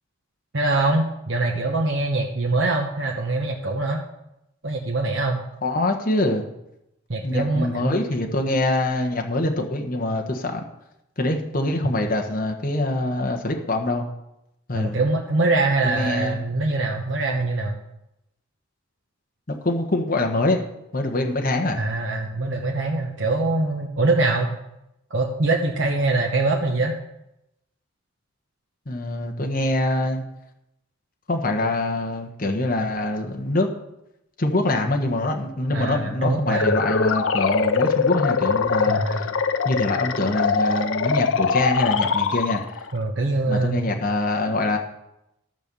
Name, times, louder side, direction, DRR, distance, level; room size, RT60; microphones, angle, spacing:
voice 1, 0.5-4.0 4.6-5.4 7.1-8.0 14.7-17.8 21.8-24.5 25.1-26.9 35.7-36.7 38.9-39.3 42.9-43.8, right 2 dB, 75° right, 0 dB, 1.1 m, -23 dB
voice 2, 5.6-6.5 7.2-10.6 11.2-14.1 14.7-15.0 15.8-16.4 19.5-20.6 20.9-21.8 28.9-30.2 31.3-33.7 34.4-39.3 39.6-42.9 43.5-44.8, left 2 dB, 45° left, 3 dB, 1.2 m, -24 dB
sound 1, 36.4-42.9, left 5 dB, 80° left, 0.6 m, -23 dB
12.5 x 5.4 x 6.9 m, 0.86 s
head